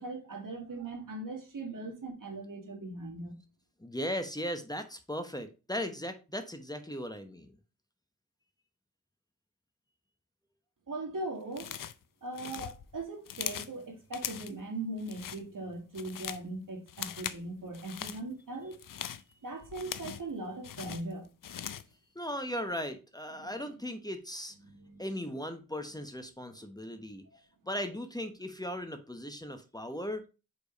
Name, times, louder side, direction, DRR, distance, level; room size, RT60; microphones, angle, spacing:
voice 1, 0.0-3.4 10.9-11.7 12.2-18.8 19.4-21.3 23.4-23.8 24.6-25.3 26.6-26.7, right 2 dB, 75° right, 2.1 m, -40 dB
voice 2, 3.8-7.5 22.1-24.6 25.0-27.2 27.6-30.2, equal, 10° left, 1.0 m, -37 dB
sound 1, 11.5-12.0 12.3-13.8 14.1-14.6 15.0-15.4 15.8-16.5 16.9-17.4 17.7-18.2 18.7-20.3 20.6-21.9, left 9 dB, 80° left, 0.5 m, -40 dB
5.1 x 4.5 x 5.2 m
wide cardioid pair, 55°, 32 cm